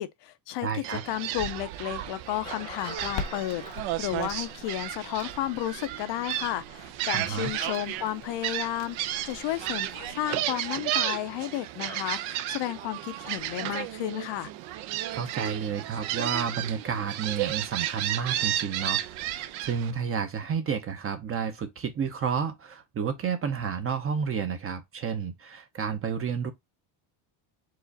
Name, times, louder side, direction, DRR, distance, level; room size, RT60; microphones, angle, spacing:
voice 1, 0.0-14.5, left 13 dB, 60° left, 0.6 m, -33 dB
voice 2, 0.6-1.0 7.1-7.5 15.1-26.5, right 7 dB, 30° right, 0.6 m, -31 dB
Gull seagull, 0.8-19.9, right 13 dB, 70° right, 0.7 m, -33 dB
sound 1, 2.4-8.1 8.3-8.4 8.9-9.0, left 3 dB, 10° left, 0.8 m, -46 dB
Crackle, 3.0-10.3, left 5 dB, 85° left, 1.5 m, -44 dB
4.8 x 2.4 x 3.9 m
cardioid pair, 145°, 50 cm